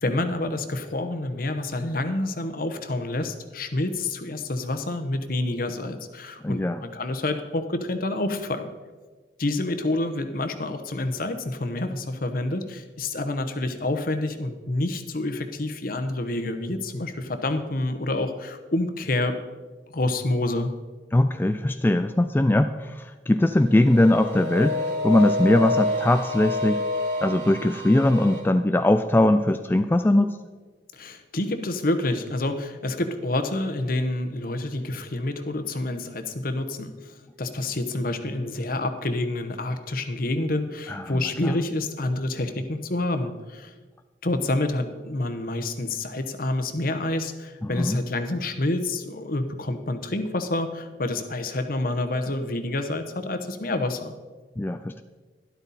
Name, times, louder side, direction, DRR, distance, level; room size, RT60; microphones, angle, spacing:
voice 1, 0.0-8.7 9.4-19.3 19.9-20.7 30.9-43.7 44.2-54.1, left 2 dB, 55° left, 8 dB, 1.1 m, -28 dB
voice 2, 6.4-6.8 21.1-24.8 25.0-26.8 27.2-30.4 40.9-41.6 47.6-48.0 54.6-55.0, left 1 dB, 10° left, 8 dB, 0.3 m, -21 dB
sound 1, 23.7-28.4, left 2 dB, 70° right, 3.8 m, -28 dB
12.5 x 12.0 x 4.2 m, 1.3 s
head